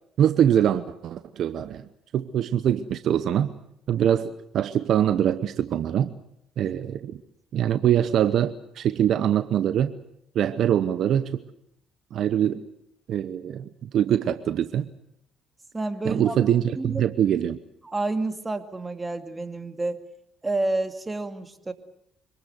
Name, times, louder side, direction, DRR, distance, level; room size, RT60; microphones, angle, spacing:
voice 1, 0.2-1.8 2.1-3.5 3.9-6.1 6.6-7.2 7.5-9.9 10.3-11.4 12.1-12.6 13.1-14.9 16.0-17.6, right 10 dB, 65° right, 13 dB, 0.9 m, -23 dB
voice 2, 15.7-16.4 16.8-17.1 17.8-20.0 20.4-21.7, right 2 dB, 20° right, 8 dB, 2.5 m, -29 dB
25.5 x 20.0 x 8.1 m, 0.76 s
hypercardioid pair, 60°, 0 cm